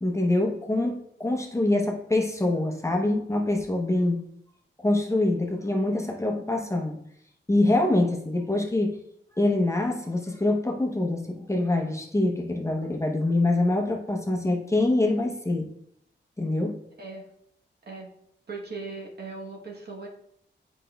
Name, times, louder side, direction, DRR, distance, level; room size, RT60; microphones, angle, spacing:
voice 1, 0.0-4.2 4.8-7.0 7.5-9.0 9.4-15.7 16.4-16.8, left 2 dB, 15° left, 1 dB, 0.8 m, -25 dB
voice 2, 18.5-20.1, right 3 dB, 55° right, 0 dB, 1.1 m, -38 dB
8.3 x 5.1 x 2.3 m, 0.72 s
wide cardioid pair, 85°, 19 cm